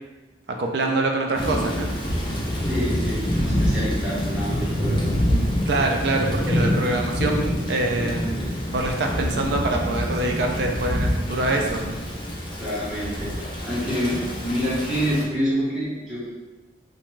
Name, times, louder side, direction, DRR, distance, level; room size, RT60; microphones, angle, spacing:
voice 1, 0.6-1.9 5.7-12.0, right 2 dB, 60° right, 2 dB, 0.4 m, -25 dB
Thunder / Rain, 1.4-15.2, equal, 25° left, 0.4 m, -26 dB
voice 2, 2.7-5.1 12.6-16.3, equal, 5° right, -10 dB, 0.9 m, -27 dB
2.6 x 2.2 x 3.1 m, 1.2 s
head